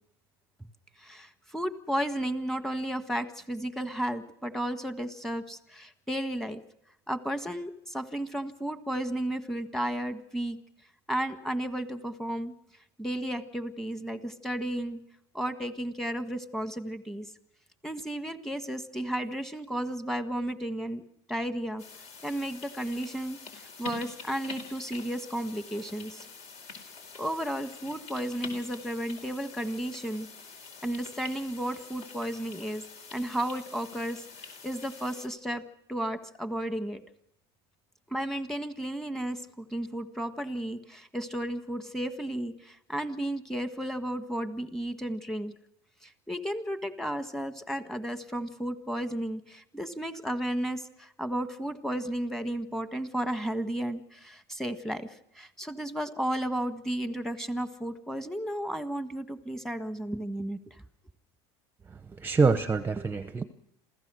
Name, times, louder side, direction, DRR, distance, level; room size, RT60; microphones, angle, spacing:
voice 1, 1.0-6.6 7.1-10.6 11.1-12.5 13.0-15.0 15.3-17.3 17.8-21.0 21.3-21.8 22.2-23.4 23.8-26.2 27.2-30.3 30.8-32.8 33.1-34.2 34.6-37.0 38.1-45.5 46.0-60.7, right 1 dB, 5° left, 8 dB, 1.6 m, -33 dB
sound 1, 21.8-35.3, left 5 dB, 55° left, 4.7 m, -46 dB
voice 2, 61.9-63.4, right 4 dB, 15° right, 10 dB, 0.9 m, -26 dB
27.5 x 16.0 x 6.4 m, 0.79 s
supercardioid pair, 120°, 14 cm